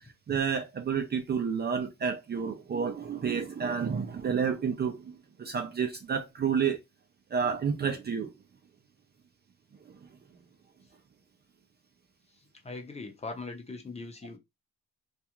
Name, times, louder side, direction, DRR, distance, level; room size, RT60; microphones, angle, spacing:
voice 1, 0.3-6.8 7.3-8.3 9.8-10.1, right 6 dB, 35° right, 0.5 m, -30 dB
voice 2, 12.6-14.4, left 3 dB, 20° left, 0.7 m, -40 dB
2.4 x 2.3 x 2.9 m
cardioid pair, 90°, 30 cm